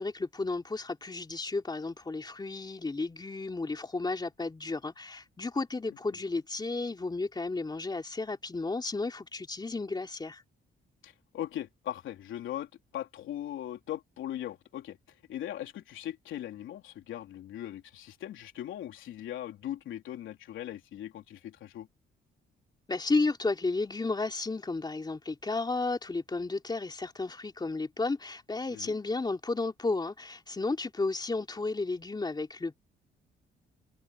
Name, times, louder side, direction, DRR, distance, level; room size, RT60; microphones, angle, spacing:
voice 1, 0.0-10.4 22.9-32.7, left 3 dB, 20° left, 3.3 m, -33 dB
voice 2, 11.0-21.9 28.7-29.0, left 12 dB, 80° left, 3.4 m, -39 dB
cardioid pair, 90°, 20 cm